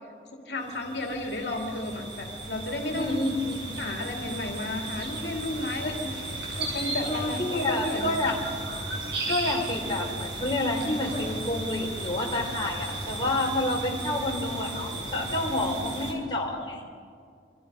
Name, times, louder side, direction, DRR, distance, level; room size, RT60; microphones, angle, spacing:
voice 1, 0.5-3.2 3.8-6.1 6.4-8.3, left 2 dB, 65° left, 2 dB, 2.7 m, -33 dB
sound 1, 0.6-16.1, right 2 dB, 75° right, 6.1 m, -35 dB
voice 2, 2.9-3.9 6.6-6.8 7.1-8.4 9.3-16.9, left 2 dB, 25° left, -2 dB, 4.0 m, -29 dB
27.5 x 26.0 x 5.5 m, 2.2 s
head